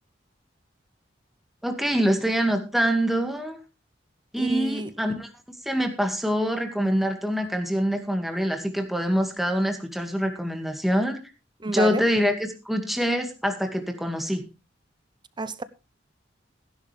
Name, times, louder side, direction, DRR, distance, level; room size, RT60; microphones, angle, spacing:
voice 1, 1.6-3.6 4.3-5.3 5.7-11.2 11.7-14.4, equal, ahead, 2.1 m, -25 dB
voice 2, 4.4-4.9 11.6-12.0 15.4-15.6, right 2 dB, 25° right, 0.9 m, -29 dB
16.0 x 11.5 x 3.4 m
head